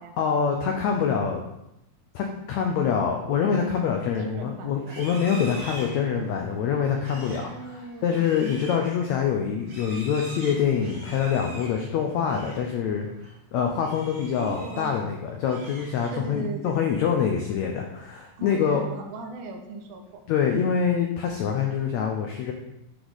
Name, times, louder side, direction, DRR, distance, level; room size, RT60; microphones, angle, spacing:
voice 1, 0.2-1.5 2.1-13.1 13.5-18.8 20.3-22.5, left 7 dB, 85° left, 2 dB, 1.6 m, -25 dB
voice 2, 4.2-5.0 7.1-8.2 14.4-14.9 16.1-16.9 18.4-20.2, right 3 dB, 85° right, 4 dB, 2.8 m, -38 dB
Livestock farm animals working animals, 4.8-12.7 13.0-13.3 13.7-15.0 15.3-16.4, right 1 dB, 60° right, 3.9 m, -44 dB
9.8 x 5.0 x 4.1 m, 0.84 s
omnidirectional pair, 4.2 m